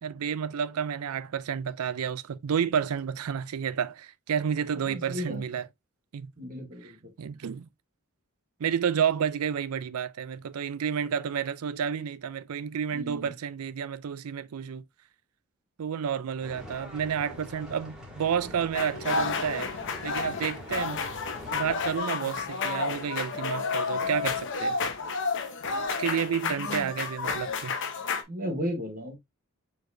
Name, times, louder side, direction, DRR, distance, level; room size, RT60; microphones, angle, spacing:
voice 1, 0.0-5.7 6.1-6.3 6.8-6.9 7.2-7.7 8.6-14.8 15.8-19.7 20.0-21.1 21.5-24.8 26.0-27.7, right 7 dB, 80° right, 0.4 m, -30 dB
voice 2, 4.8-5.4 6.4-7.1 12.9-13.3 26.4-26.9 28.3-29.2, equal, 40° right, 1.2 m, -35 dB
sound 1, 16.4-22.0, left 1 dB, 5° right, 2.6 m, -44 dB
sound 2, 18.7-28.2, left 4 dB, 60° left, 0.8 m, -31 dB
4.7 x 4.2 x 2.6 m
head